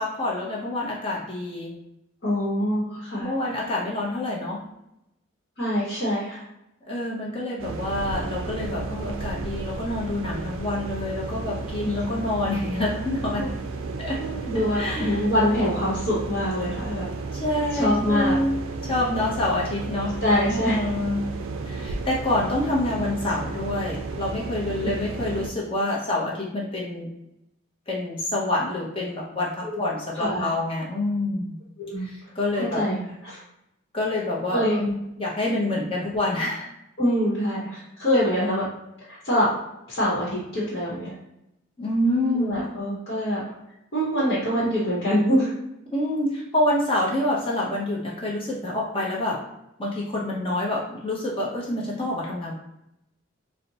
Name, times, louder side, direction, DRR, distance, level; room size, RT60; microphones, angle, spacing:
voice 1, 0.0-1.8 3.2-4.6 6.9-13.5 14.0-14.2 14.5-15.2 17.3-21.3 21.7-27.1 27.9-31.5 32.0-32.8 33.9-36.7 41.8-42.7 45.9-49.4 49.8-52.5, left 1 dB, 25° left, -4 dB, 0.8 m, -27 dB
voice 2, 2.2-3.3 5.6-6.4 11.8-11.9 13.4-13.5 14.2-17.1 17.7-18.4 20.2-20.9 29.6-29.8 30.2-30.5 31.8-32.1 32.6-33.4 34.5-34.8 37.0-38.7 39.1-39.6 39.9-41.2 42.4-43.4 43.9-45.5, equal, 50° left, -9 dB, 1.0 m, -24 dB
sound 1, 7.6-25.5, right 3 dB, 75° right, 0.4 m, -33 dB
4.1 x 2.1 x 2.9 m, 0.86 s
head